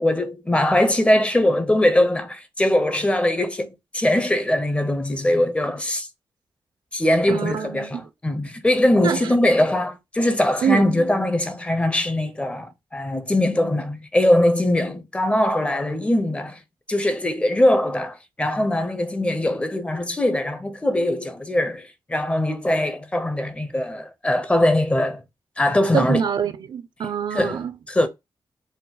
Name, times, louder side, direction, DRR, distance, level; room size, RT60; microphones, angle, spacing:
voice 1, 0.0-6.1 6.9-16.6 16.9-25.2 25.6-26.2 27.3-28.1, left 1 dB, 15° left, 0.5 m, -21 dB
voice 2, 7.3-8.0 9.0-9.2 10.6-10.8 25.9-27.7, right 7 dB, 65° right, 0.5 m, -24 dB
4.1 x 2.1 x 3.8 m
wide cardioid pair, 125°, 8 cm